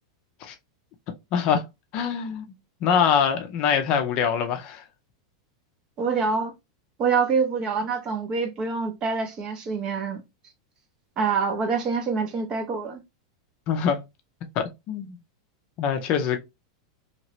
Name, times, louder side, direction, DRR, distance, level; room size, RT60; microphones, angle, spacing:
voice 1, 1.3-1.6 1.9-2.5 2.8-4.8 13.7-14.0 14.6-15.2 15.8-16.4, left 7 dB, 35° left, 0.5 m, -24 dB
voice 2, 6.0-6.5 7.0-10.2 11.2-13.0, right 5 dB, 25° right, 0.7 m, -26 dB
2.9 x 2.8 x 3.0 m
supercardioid pair, 160°, 3 cm